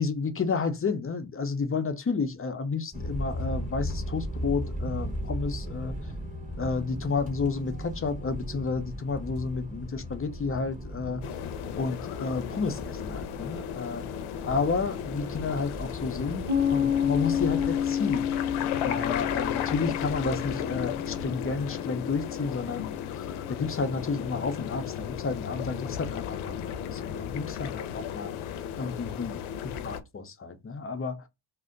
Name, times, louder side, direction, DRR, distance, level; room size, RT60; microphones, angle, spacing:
voice 1, 0.0-5.9 6.6-11.2 11.8-14.1 14.4-16.4 16.7-18.3 18.8-23.0 23.5-28.3 28.8-31.2, left 4 dB, 25° left, 0.6 m, -31 dB
sound 1, 2.9-21.3, equal, 15° right, 1.0 m, -38 dB
sound 2, 11.2-30.0, left 9 dB, 80° left, 0.6 m, -35 dB
Piano, 16.5-23.7, left 8 dB, 75° right, 1.2 m, -30 dB
2.5 x 2.1 x 3.7 m
cardioid pair, 65°, 49 cm